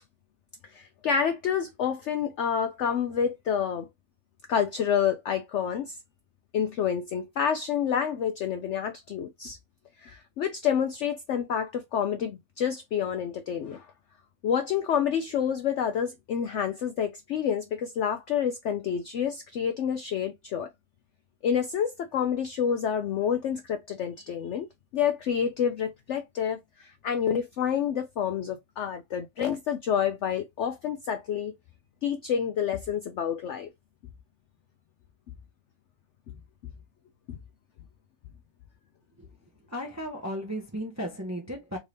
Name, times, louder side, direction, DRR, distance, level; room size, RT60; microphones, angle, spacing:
voice 1, 0.7-3.9 4.5-6.0 6.5-9.6 10.0-13.9 14.4-20.7 21.4-24.7 24.9-31.5 32.0-33.7 37.3-37.4, left 8 dB, 75° left, 0.6 m, -28 dB
voice 2, 39.7-41.8, equal, 15° right, 0.5 m, -35 dB
3.6 x 2.6 x 3.3 m
omnidirectional pair, 1.7 m